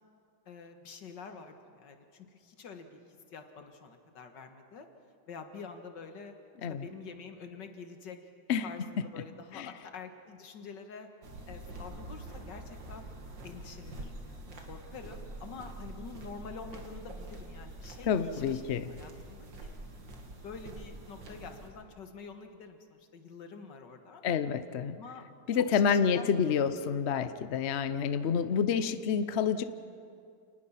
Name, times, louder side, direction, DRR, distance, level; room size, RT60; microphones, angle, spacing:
voice 1, 0.5-3.0 3.3-4.9 5.3-6.3 6.7-8.2 8.6-11.1 11.5-13.1 13.4-18.6 18.9-19.7 20.4-24.2 25.0-25.2 25.5-26.8 28.5-28.6, left 5 dB, 75° left, 6 dB, 2.1 m, -47 dB
sound 1, 11.2-21.7, right 2 dB, 80° right, 2.7 m, -46 dB
voice 2, 18.1-18.9 24.2-25.0 25.5-29.6, left 7 dB, 55° left, 12 dB, 0.8 m, -28 dB
29.0 x 19.5 x 5.8 m, 2.4 s
omnidirectional pair, 2.0 m